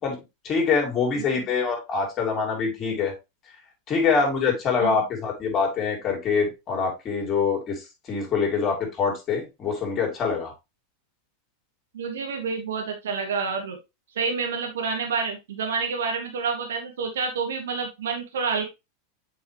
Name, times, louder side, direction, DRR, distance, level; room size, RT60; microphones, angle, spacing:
voice 1, 0.4-3.1 3.9-10.5, left 5 dB, 35° left, 1 dB, 2.8 m, -25 dB
voice 2, 11.9-13.8 14.1-18.6, right 5 dB, 75° right, 4 dB, 1.5 m, -28 dB
7.6 x 4.7 x 3.1 m, 0.24 s
hypercardioid pair, 95°, 0 cm